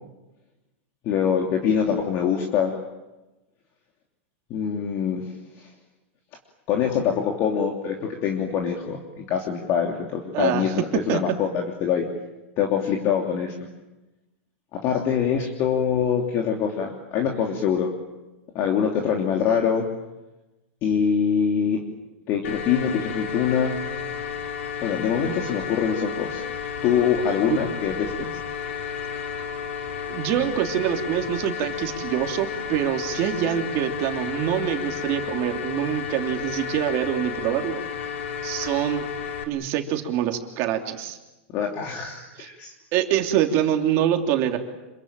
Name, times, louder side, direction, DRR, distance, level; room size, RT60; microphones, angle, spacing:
voice 1, 1.0-2.8 4.5-5.3 6.7-12.1 12.6-13.5 14.7-17.9 18.5-19.9 20.8-21.8 22.3-23.8 24.8-26.4 26.8-28.3 41.5-42.7, left 7 dB, 35° left, 1 dB, 3.1 m, -24 dB
voice 2, 10.3-10.7 11.1-11.2 27.5-27.6 30.1-37.8 38.4-39.1 39.5-41.2 42.4-42.5 42.9-44.6, right 10 dB, 40° right, 4 dB, 3.0 m, -25 dB
sound 1, 22.4-39.4, left 7 dB, 80° left, 4.2 m, -32 dB
27.0 x 23.5 x 9.0 m, 1.1 s
supercardioid pair, 155°, 7 cm